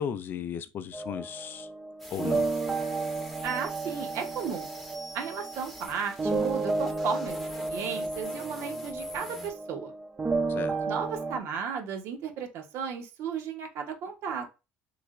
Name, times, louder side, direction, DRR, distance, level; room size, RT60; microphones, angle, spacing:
voice 1, 0.0-1.7 2.1-2.5 10.5-10.7, left 8 dB, 45° left, 0.4 m, -35 dB
sound 1, 0.9-11.4, right 3 dB, 20° right, 0.5 m, -32 dB
sound 2, 2.0-9.5, left 1 dB, ahead, 0.8 m, -46 dB
voice 2, 3.4-4.7 5.1-9.9 10.9-14.5, right 6 dB, 65° right, 0.8 m, -34 dB
3.2 x 3.1 x 2.4 m
cardioid pair, 115°, 5 cm